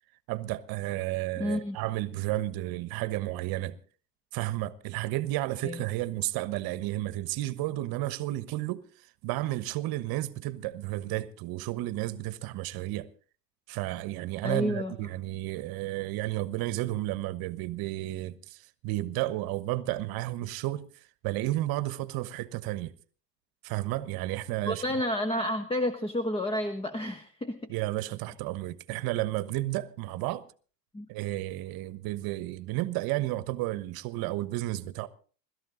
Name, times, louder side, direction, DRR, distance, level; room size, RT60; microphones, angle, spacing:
voice 1, 0.3-3.8 4.3-8.8 9.2-13.1 13.7-20.9 21.2-22.9 23.6-24.8 27.7-30.5 31.1-35.1, right 16 dB, 45° right, 1.2 m, -32 dB
voice 2, 1.4-1.8 5.6-5.8 14.4-14.9 24.6-27.6 30.9-31.1, left 1 dB, 10° left, 1.2 m, -30 dB
22.5 x 13.5 x 3.9 m
supercardioid pair, 115°, 48 cm